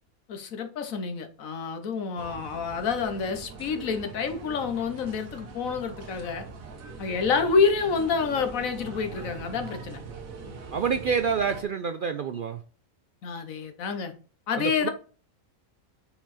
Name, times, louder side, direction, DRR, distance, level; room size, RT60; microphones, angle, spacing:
voice 1, 0.3-6.5 7.0-10.0 13.2-14.1 14.5-14.9, left 5 dB, 90° left, 1.4 m, -28 dB
sound 1, 2.2-11.6, right 4 dB, 85° right, 1.5 m, -42 dB
voice 2, 10.7-12.6 14.6-14.9, right 6 dB, 65° right, 0.5 m, -27 dB
5.4 x 4.7 x 4.2 m
omnidirectional pair, 1.4 m